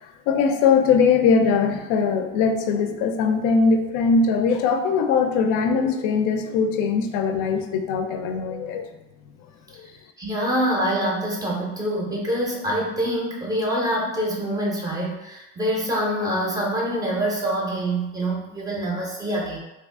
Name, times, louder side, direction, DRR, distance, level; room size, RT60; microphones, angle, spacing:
voice 1, 0.3-8.8, left 5 dB, 85° left, 6 dB, 0.5 m, -21 dB
voice 2, 10.2-19.6, right 1 dB, 10° right, -3 dB, 0.4 m, -25 dB
2.8 x 2.4 x 3.5 m, 0.98 s
cardioid pair, 175°, 31 cm